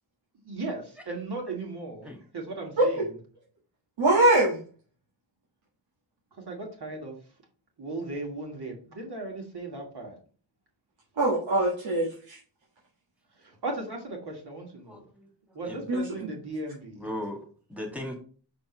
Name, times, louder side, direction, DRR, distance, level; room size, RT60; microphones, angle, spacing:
voice 1, 0.3-3.1 6.4-7.2 7.8-10.2 13.4-15.1 15.5-17.1, right 2 dB, 60° right, 0 dB, 2.3 m, -37 dB
voice 2, 4.0-4.6 11.2-12.4 15.9-16.0, right 1 dB, 90° right, -5 dB, 1.8 m, -22 dB
voice 3, 14.9-15.8 17.0-17.4 17.7-18.1, left 1 dB, 5° right, 2 dB, 2.0 m, -37 dB
5.2 x 4.3 x 5.1 m, 0.41 s
cardioid pair, 70°, 45 cm